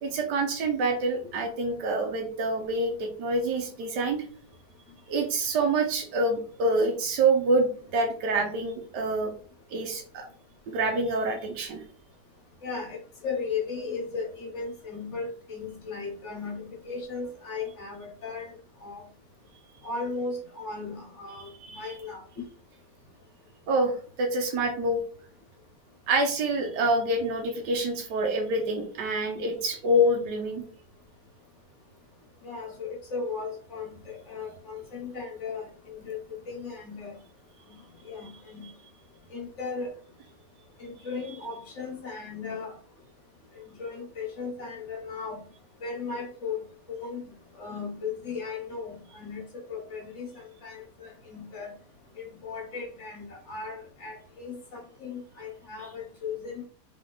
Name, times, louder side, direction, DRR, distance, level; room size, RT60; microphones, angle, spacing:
voice 1, 0.0-4.3 5.1-9.3 9.7-10.3 10.7-11.8 21.4-21.9 23.7-25.0 26.1-30.6 38.6-38.7, right 2 dB, 90° right, 3 dB, 1.5 m, -26 dB
voice 2, 12.6-18.5 18.8-19.0 19.8-22.4 32.4-36.2 36.5-37.2 38.0-38.7 39.3-39.9 40.8-42.7 43.8-45.4 45.8-46.6 46.9-47.2 47.6-49.4 49.7-51.7 52.2-56.7, left 4 dB, 50° left, 0 dB, 1.5 m, -36 dB
3.9 x 3.6 x 3.4 m, 0.44 s
omnidirectional pair, 1.8 m